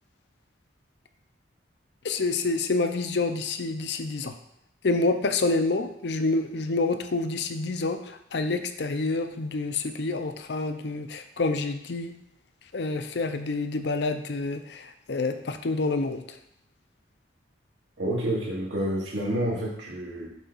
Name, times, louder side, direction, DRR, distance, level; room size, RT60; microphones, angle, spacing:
voice 1, 2.0-4.3 4.8-12.1 12.7-16.2, left 3 dB, 65° left, 8 dB, 0.6 m, -28 dB
voice 2, 18.0-20.3, right 1 dB, 75° right, -4 dB, 2.1 m, -29 dB
7.3 x 3.5 x 5.5 m, 0.75 s
head